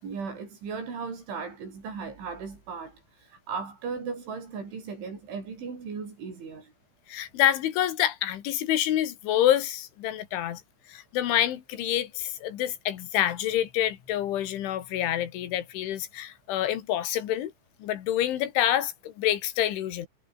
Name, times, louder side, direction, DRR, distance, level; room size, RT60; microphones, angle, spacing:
voice 1, 0.0-3.0 3.5-6.7, right 5 dB, 80° right, 9.5 m, -36 dB
voice 2, 7.1-10.6 10.9-17.5 17.8-20.1, left 12 dB, 85° left, 4.5 m, -27 dB
omnidirectional pair, 5.3 m